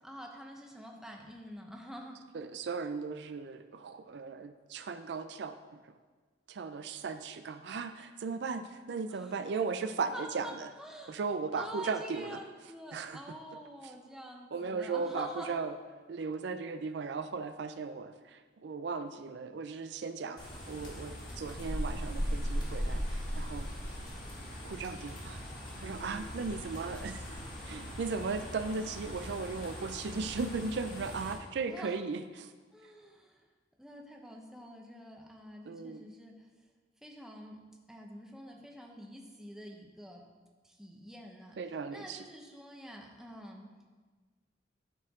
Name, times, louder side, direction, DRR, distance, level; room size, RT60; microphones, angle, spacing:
voice 1, 0.0-2.2 9.1-9.3 10.1-10.5 10.8-11.2 11.6-15.6 31.6-31.9 32.7-33.4 33.8-36.5 37.0-37.6 37.9-40.2 40.6-41.6 41.9-43.8, equal, 5° right, 0 dB, 0.8 m, -47 dB
voice 2, 2.3-5.6 5.8-6.0 6.5-10.7 11.1-12.4 12.9-13.2 14.5-15.8 16.1-23.7 24.6-25.4 25.8-27.2 27.6-32.5 35.7-36.0 41.6-42.2, right 4 dB, 70° right, 10 dB, 0.4 m, -37 dB
sound 1, 20.4-31.3, equal, 50° left, 2.0 m, -39 dB
13.0 x 4.5 x 3.7 m, 1.4 s
head